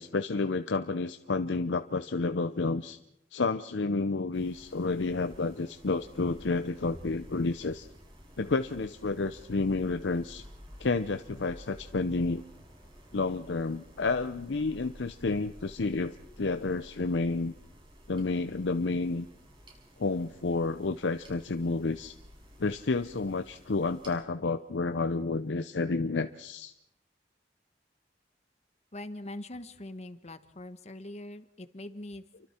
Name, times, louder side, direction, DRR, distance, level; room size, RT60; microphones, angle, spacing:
voice 1, 0.0-3.0 3.3-7.9 8.4-10.4 10.8-12.4 13.1-17.5 18.1-19.3 20.0-22.1 22.6-26.7, left 3 dB, 85° left, 9 dB, 0.7 m, -30 dB
sound 1, 4.3-24.2, equal, 30° right, 6.8 m, -52 dB
voice 2, 28.9-32.2, left 1 dB, 40° left, 10 dB, 1.2 m, -42 dB
29.0 x 24.5 x 4.4 m, 0.78 s
head